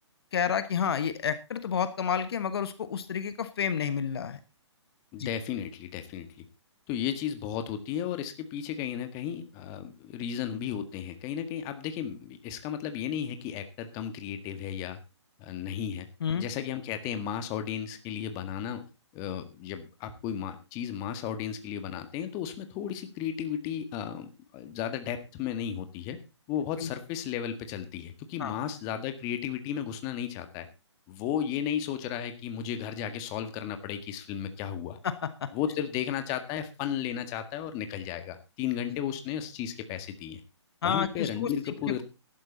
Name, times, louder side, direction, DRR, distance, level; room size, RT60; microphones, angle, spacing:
voice 1, 0.3-4.4 5.2-5.3 16.2-16.5 26.8-26.9 28.4-28.5 35.0-35.5 40.8-41.7, left 7 dB, 55° left, 12 dB, 1.3 m, -30 dB
voice 2, 5.1-6.5 6.9-15.0 15.4-16.1 16.3-18.8 19.1-26.2 26.5-30.7 31.1-35.0 35.5-40.4 40.8-42.0, left 9 dB, 25° left, 8 dB, 1.7 m, -34 dB
13.5 x 12.0 x 4.0 m, 0.28 s
hypercardioid pair, 150°, 15 cm